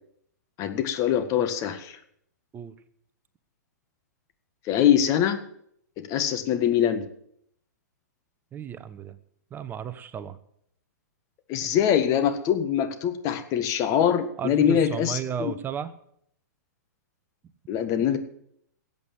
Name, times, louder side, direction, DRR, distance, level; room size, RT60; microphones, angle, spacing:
voice 1, 0.6-2.0 4.7-5.4 6.0-7.0 11.5-15.5 17.7-18.2, left 9 dB, 35° left, 9 dB, 1.6 m, -23 dB
voice 2, 8.5-9.2 9.5-10.4 11.6-11.7 14.4-15.9, right 8 dB, 20° right, 12 dB, 1.0 m, -34 dB
14.0 x 8.3 x 9.2 m, 0.70 s
hypercardioid pair, 120°, 9 cm